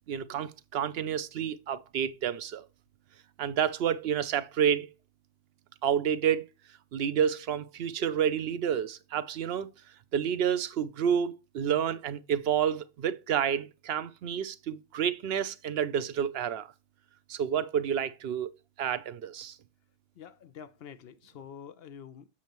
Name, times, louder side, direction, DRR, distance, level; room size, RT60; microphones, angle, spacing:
voice 1, 0.1-2.7 3.4-4.9 5.8-6.4 6.9-9.7 10.1-16.7 17.3-18.5 18.8-19.6, right 8 dB, 70° right, 0.8 m, -29 dB
voice 2, 20.2-22.3, left 8 dB, 70° left, 0.8 m, -47 dB
7.3 x 6.3 x 3.0 m
omnidirectional pair, 1.1 m